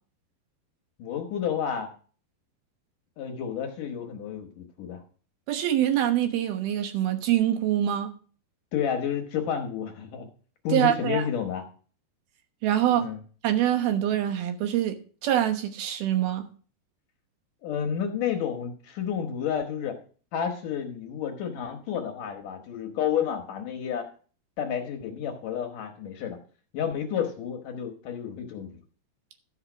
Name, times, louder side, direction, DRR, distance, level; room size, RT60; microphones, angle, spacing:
voice 1, 1.0-1.9 3.2-5.0 8.7-10.3 10.6-11.6 12.9-13.2 17.6-20.0 20.3-24.1 24.6-26.4 26.7-28.8, left 8 dB, 65° left, 3 dB, 2.2 m, -30 dB
voice 2, 5.5-8.1 10.7-11.3 12.6-13.0 13.4-15.0 15.2-16.5, right 11 dB, 70° right, 7 dB, 2.9 m, -24 dB
13.0 x 5.6 x 6.0 m, 0.41 s
omnidirectional pair, 4.8 m